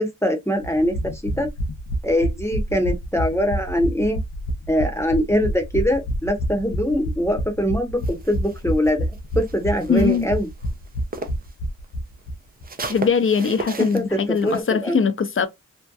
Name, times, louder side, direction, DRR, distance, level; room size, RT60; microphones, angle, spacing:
voice 1, 0.0-1.5 2.0-4.2 4.7-10.5 13.8-15.0, equal, 10° left, 0.8 m, -23 dB
sound 1, 0.6-12.3 12.6-12.7 12.9-13.0, equal, 85° left, 0.6 m, -28 dB
sound 2, 8.0-11.5 11.8-14.6, right 3 dB, 30° right, 0.5 m, -36 dB
voice 2, 9.9-10.3 12.9-15.5, left 6 dB, 40° left, 0.5 m, -21 dB
2.7 x 2.1 x 2.2 m
cardioid pair, 50°, 31 cm